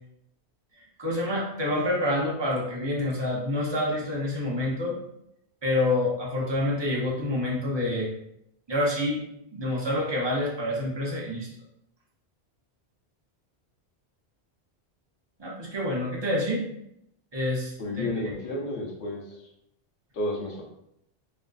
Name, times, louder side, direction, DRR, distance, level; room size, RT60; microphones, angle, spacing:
voice 1, 1.0-5.0 5.6-8.1 8.7-9.2 9.5-11.5 15.4-16.7 17.3-18.3, left 1 dB, 45° right, -4 dB, 0.3 m, -27 dB
voice 2, 17.8-19.2 20.1-20.6, left 1 dB, 80° left, -2 dB, 1.0 m, -31 dB
2.5 x 2.3 x 2.3 m, 0.76 s
omnidirectional pair, 1.2 m